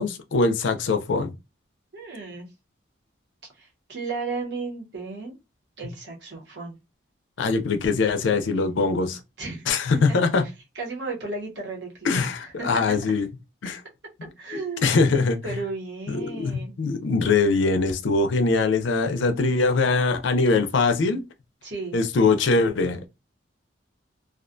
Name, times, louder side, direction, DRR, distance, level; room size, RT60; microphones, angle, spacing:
voice 1, 0.0-1.3 7.4-9.2 9.7-10.4 12.0-13.3 13.6-13.8 14.8-15.4 16.1-21.2 21.9-23.1, left 4 dB, 75° left, 0.4 m, -22 dB
voice 2, 1.9-2.5 3.5-5.3 5.8-6.8 9.4-10.2 10.7-12.2 12.6-13.0 14.4-16.8 21.6-22.0, right 3 dB, 60° right, 0.9 m, -34 dB
2.3 x 2.2 x 2.5 m
head